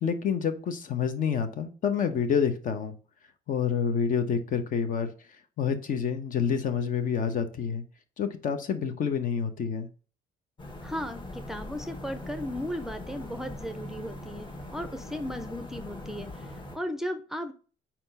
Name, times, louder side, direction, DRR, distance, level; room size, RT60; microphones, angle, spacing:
voice 1, 0.0-2.9 3.5-5.1 5.6-7.8 8.2-9.9, left 7 dB, 50° left, 8 dB, 1.1 m, -28 dB
sound 1, 10.6-16.8, left 1 dB, 30° left, 1.6 m, -41 dB
voice 2, 10.8-17.5, equal, ahead, 9 dB, 0.6 m, -36 dB
4.5 x 4.4 x 5.5 m, 0.37 s
cardioid pair, 110°, 17 cm